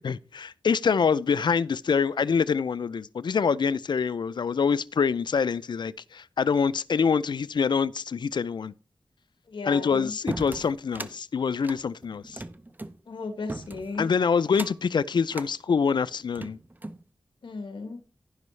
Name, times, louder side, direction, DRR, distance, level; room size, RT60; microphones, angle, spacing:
voice 1, 0.0-8.7 9.7-12.4 14.0-16.6, left 6 dB, 65° left, 0.4 m, -25 dB
voice 2, 9.5-10.1 13.1-14.1 17.4-18.0, left 3 dB, 80° left, 1.2 m, -35 dB
sound 1, 10.3-11.2 11.6-13.0 13.5-14.0 14.5-14.9 15.3-15.5 16.1-17.0, right 2 dB, 20° right, 0.7 m, -38 dB
15.5 x 5.4 x 3.2 m
wide cardioid pair, 75°, 8 cm